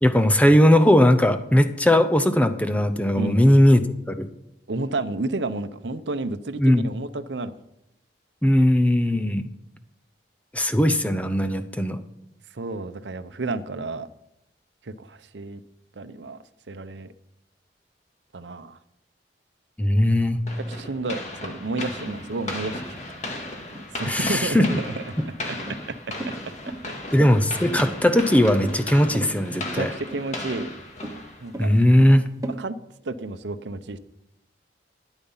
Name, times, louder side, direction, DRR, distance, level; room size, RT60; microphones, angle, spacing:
voice 1, 0.0-4.3 6.6-6.9 8.4-9.5 10.5-12.0 19.8-20.4 24.0-24.8 27.1-29.9 31.6-32.2, left 1 dB, 10° left, 9 dB, 0.7 m, -19 dB
voice 2, 4.7-7.6 12.5-14.1 14.8-15.6 16.0-16.4 16.7-17.1 18.3-18.8 20.7-23.2 23.9-25.0 29.5-30.7 31.4-31.7 32.6-32.7 33.0-34.0, right 2 dB, 80° right, 12 dB, 0.7 m, -31 dB
sound 1, 20.5-31.7, left 2 dB, 40° left, 2.1 m, -36 dB
sound 2, 21.7-32.6, right 2 dB, 20° right, 1.1 m, -38 dB
13.0 x 10.0 x 5.6 m, 0.84 s
head